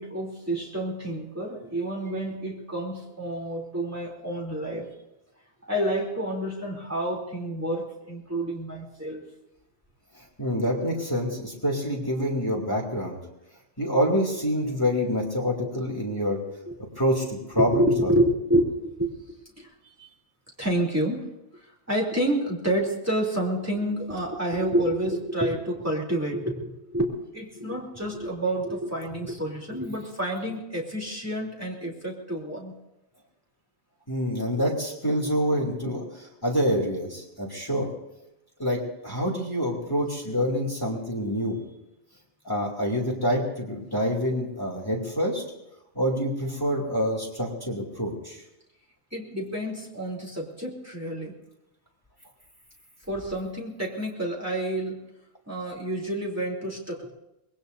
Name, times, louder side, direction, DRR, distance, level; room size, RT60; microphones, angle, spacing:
voice 1, 0.0-4.9 5.6-9.2 16.7-16.8 17.6-19.7 20.6-21.3 21.5-32.7 49.1-51.4 53.1-55.0 55.5-57.1, right 1 dB, 15° right, -2 dB, 3.2 m, -29 dB
voice 2, 10.4-13.2 13.8-16.4 17.0-18.2 34.1-37.9 38.6-41.6 42.4-45.4 45.9-48.4, equal, 20° left, -2 dB, 2.8 m, -26 dB
25.0 x 20.5 x 2.7 m, 0.91 s
omnidirectional pair, 1.2 m